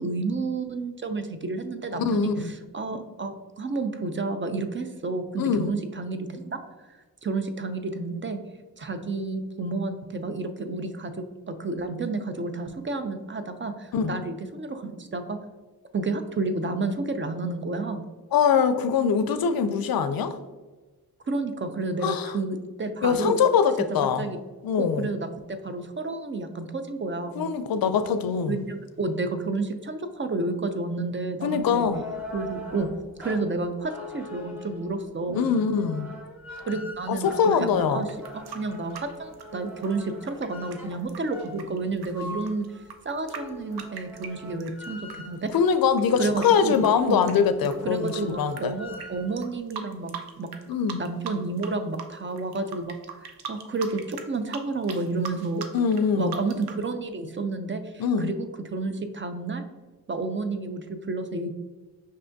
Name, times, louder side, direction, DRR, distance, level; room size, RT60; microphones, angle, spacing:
voice 1, 0.0-6.6 6.9-8.4 8.8-15.4 15.9-18.1 21.3-23.4 24.2-24.4 24.8-27.4 28.5-31.9 32.3-32.9 33.2-35.5 36.7-42.7 43.0-45.5 46.2-46.8 47.1-47.2 47.6-50.1 50.4-50.5 51.0-53.0 53.2-55.7 56.1-59.6 60.1-61.5, right 3 dB, 30° right, 8 dB, 0.5 m, -30 dB
voice 2, 1.9-2.5 5.4-5.7 13.9-14.1 18.3-20.4 22.0-22.4 23.0-24.3 24.6-25.1 27.4-28.5 31.4-32.0 35.3-36.1 37.1-38.1 45.5-48.7 50.7-51.0 55.7-56.4 58.0-58.3, left 6 dB, 65° left, 11 dB, 0.5 m, -23 dB
sound 1, 31.6-45.6 46.1-46.2 46.4-49.3, left 1 dB, 5° right, 1.2 m, -43 dB
sound 2, 38.0-45.2 45.5-48.6 48.9-49.1 49.4-50.6 50.9-51.7 51.9-56.8, right 7 dB, 75° right, 0.6 m, -40 dB
5.3 x 3.3 x 2.6 m, 1.3 s
cardioid pair, 60°, 39 cm